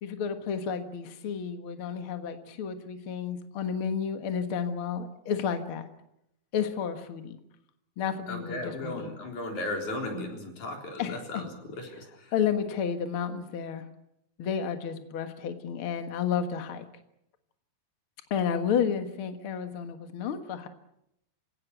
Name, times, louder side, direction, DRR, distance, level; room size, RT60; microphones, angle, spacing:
voice 1, 0.0-5.9 6.5-7.4 8.0-9.1 11.0-11.4 12.3-13.8 14.4-16.8 18.3-20.7, left 7 dB, 75° left, 8 dB, 1.2 m, -31 dB
voice 2, 8.3-12.3, left 1 dB, 45° left, 2 dB, 5.0 m, -36 dB
27.5 x 17.5 x 8.2 m, 0.81 s
omnidirectional pair, 4.9 m